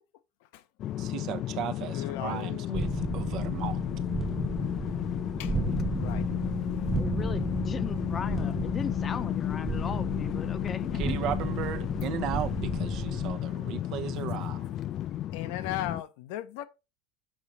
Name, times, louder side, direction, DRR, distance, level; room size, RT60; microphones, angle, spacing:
sound 1, 0.8-16.0, left 12 dB, 45° left, 0.4 m, -32 dB
voice 1, 1.0-3.8 11.0-14.7, right 11 dB, 55° right, 0.7 m, -36 dB
voice 2, 1.9-2.5 5.4-5.6 6.0-6.3 15.3-16.7, left 13 dB, 70° left, 0.8 m, -36 dB
sound 2, 2.7-13.4, right 4 dB, 20° right, 0.7 m, -34 dB
voice 3, 6.9-11.2, left 6 dB, 30° left, 0.8 m, -38 dB
6.2 x 4.8 x 4.1 m
supercardioid pair, 110°, 0 cm